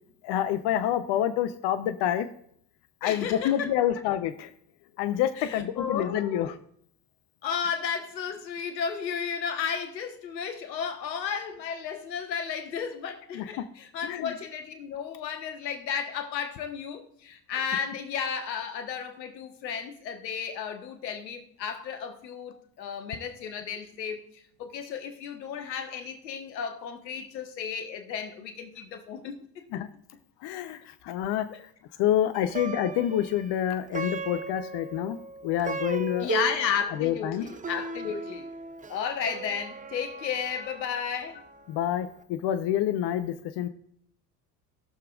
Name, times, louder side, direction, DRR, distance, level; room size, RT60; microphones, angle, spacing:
voice 1, 0.2-2.3 3.0-4.5 5.0-6.6 13.3-13.6 14.0-14.3 29.7-29.9 30.4-31.4 32.0-35.2 35.4-36.3 37.0-37.4 41.7-43.7, left 11 dB, 55° left, 0.8 m, -27 dB
voice 2, 3.0-3.8 5.4-6.5 7.4-24.3 24.6-29.4 31.5-31.6 36.2-38.5 38.9-41.4, left 7 dB, 85° left, 1.3 m, -33 dB
Plucked string instrument, 32.3-41.8, right 4 dB, 15° right, 0.7 m, -37 dB
18.5 x 6.8 x 2.4 m
hypercardioid pair, 65°, 50 cm